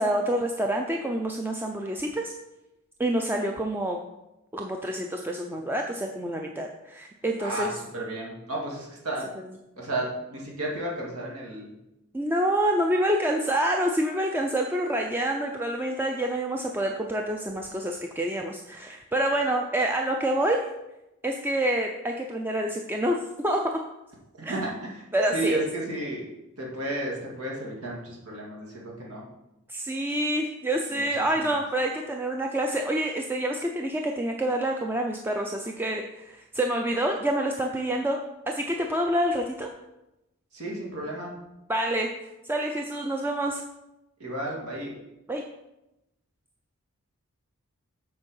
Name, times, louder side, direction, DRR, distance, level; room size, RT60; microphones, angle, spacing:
voice 1, 0.0-2.3 3.0-4.0 4.5-7.8 12.1-20.7 21.2-23.2 23.4-23.8 24.4-24.5 25.1-25.7 29.7-39.7 41.7-42.1 42.4-43.6 45.3-45.4, right 1 dB, 10° right, 2 dB, 0.4 m, -27 dB
voice 2, 7.4-9.3 9.8-11.7 24.4-24.7 25.3-26.2 26.6-29.2 40.5-41.3 44.2-44.9, right 1 dB, 80° right, -2 dB, 2.2 m, -32 dB
7.9 x 4.5 x 5.5 m, 0.93 s
head